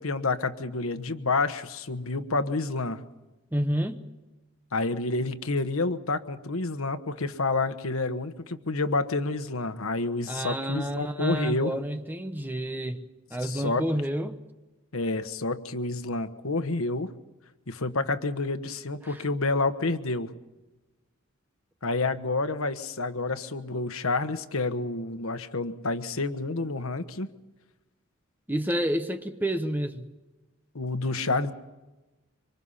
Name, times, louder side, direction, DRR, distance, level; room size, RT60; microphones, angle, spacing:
voice 1, 0.0-3.0 4.7-11.7 13.4-13.9 14.9-17.1 17.7-20.3 21.8-27.3 30.7-31.5, left 3 dB, 85° left, 1.3 m, -29 dB
voice 2, 3.5-4.0 10.3-14.4 19.0-19.2 28.5-30.1, right 1 dB, 10° right, 1.1 m, -29 dB
25.5 x 24.5 x 5.7 m
head